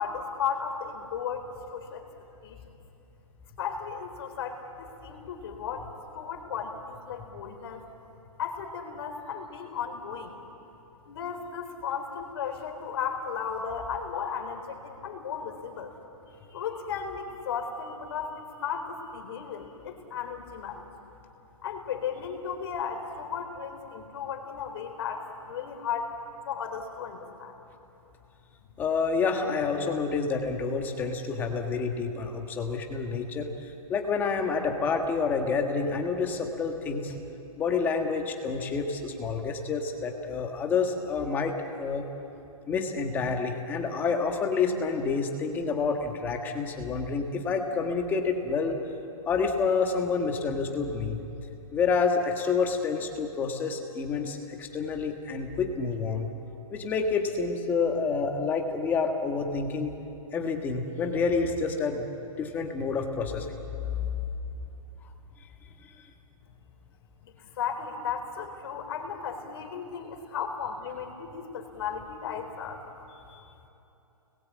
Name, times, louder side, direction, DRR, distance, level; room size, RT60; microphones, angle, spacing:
voice 1, 0.0-1.5 1.7-2.0 2.4-2.6 3.6-7.8 8.4-10.3 11.1-15.9 16.5-20.9 21.6-26.1 26.5-27.5 67.2-72.8 73.1-73.5, left 7 dB, 45° left, 3 dB, 3.9 m, -35 dB
voice 2, 28.8-37.2 37.6-42.0 42.7-48.8 49.3-51.2 51.7-56.3 56.7-59.9 60.3-62.1 62.4-63.5 64.0-64.1 65.8-65.9, left 5 dB, 10° left, 3 dB, 1.6 m, -28 dB
29.5 x 21.0 x 8.6 m, 2.9 s
hypercardioid pair, 170°, 18 cm